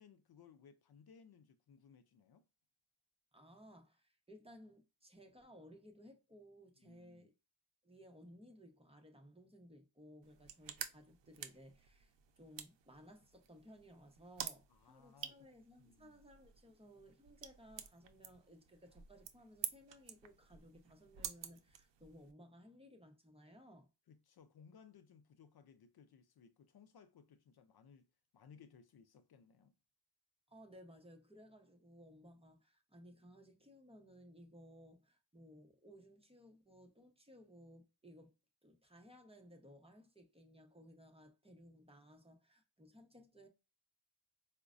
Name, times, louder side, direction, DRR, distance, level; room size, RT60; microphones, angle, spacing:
voice 1, 0.0-2.4 6.8-7.3 14.7-15.5 15.8-16.2 24.1-28.1 28.3-29.7, left 6 dB, 60° left, 0.5 m, -62 dB
voice 2, 3.3-7.3 7.8-23.9 30.5-38.3 38.6-43.5, equal, 15° right, 0.8 m, -60 dB
sound 1, 10.2-22.3, right 9 dB, 80° right, 0.6 m, -50 dB
4.6 x 2.1 x 2.5 m
wide cardioid pair, 85°, 43 cm